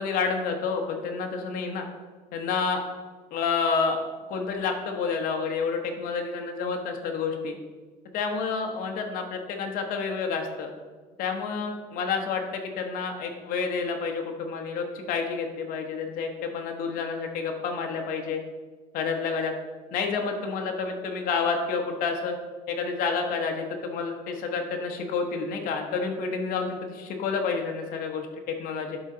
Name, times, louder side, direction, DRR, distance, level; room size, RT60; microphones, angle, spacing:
voice 1, 0.0-1.9 2.3-2.8 3.3-4.0 4.3-7.6 8.1-10.7 11.2-18.4 18.9-19.5 19.9-22.3 22.7-29.0, left 5 dB, 70° left, 3 dB, 1.1 m, -29 dB
11.0 x 4.1 x 3.8 m, 1.4 s
cardioid pair, 150°, 15 cm